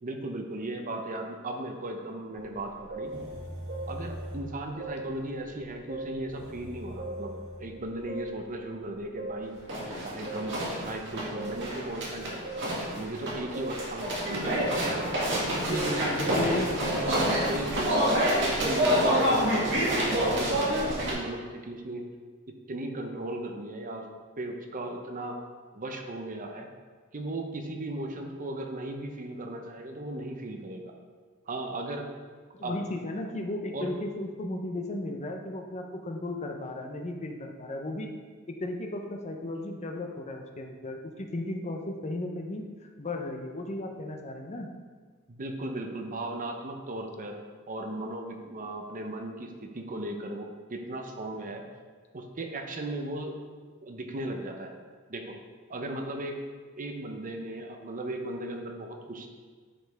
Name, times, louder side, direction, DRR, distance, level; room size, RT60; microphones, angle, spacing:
voice 1, 0.0-3.1 3.9-9.6 10.0-12.5 12.9-14.7 15.3-16.7 17.4-22.0 22.7-24.1 24.4-25.4 25.7-26.7 27.1-30.9 31.5-32.1 32.6-32.8 33.7-33.9 45.3-51.6 52.1-53.4 53.8-54.7 55.1-55.4 55.7-56.4 56.8-59.3, right 1 dB, 40° right, 3 dB, 0.8 m, -36 dB
sound 1, 2.3-2.5 2.9-4.5 4.8-5.5 5.9-7.7 8.1-8.7 9.2-21.1, equal, 60° right, 2.0 m, -29 dB
voice 2, 15.6-17.6 32.5-38.1 38.5-44.7, left 1 dB, 35° left, 3 dB, 0.7 m, -35 dB
9.9 x 5.2 x 3.5 m, 1.5 s
head